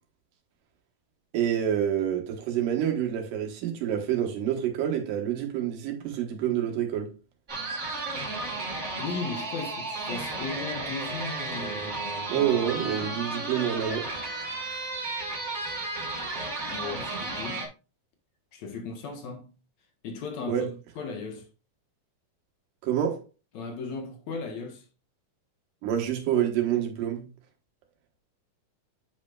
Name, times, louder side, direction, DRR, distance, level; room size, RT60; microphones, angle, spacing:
voice 1, 1.3-7.1 12.3-14.1 20.5-20.7 22.8-23.2 25.8-27.3, right 10 dB, 85° right, 3.0 m, -27 dB
sound 1, 7.5-17.7, right 2 dB, 35° right, 1.7 m, -33 dB
voice 2, 9.0-13.2 16.7-17.7 18.5-19.6 20.0-21.5 23.5-24.9, left 4 dB, 65° left, 2.2 m, -37 dB
10.0 x 5.3 x 2.4 m
omnidirectional pair, 3.7 m